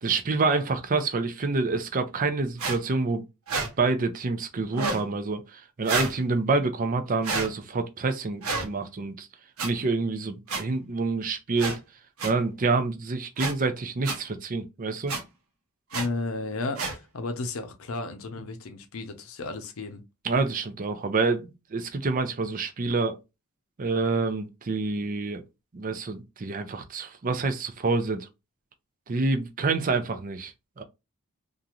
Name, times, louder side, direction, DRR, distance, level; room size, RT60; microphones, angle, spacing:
voice 1, 0.0-3.2 3.8-9.3 9.6-11.7 12.2-15.1 20.2-23.2 23.8-25.4 25.7-28.3 29.1-30.8, right 3 dB, 40° right, 0.5 m, -27 dB
sound 1, 2.6-2.8 3.5-3.7 4.7-5.0 5.8-6.1 7.2-7.5 8.4-8.7 9.6-9.7 10.5-10.6 11.6-11.8 12.2-12.3 13.4-13.5 14.0-14.2 15.1-15.2 15.9-16.1 16.8-16.9, right 4 dB, 75° right, 0.9 m, -29 dB
voice 2, 15.9-20.0, left 3 dB, 65° left, 0.6 m, -33 dB
3.0 x 2.5 x 2.4 m
head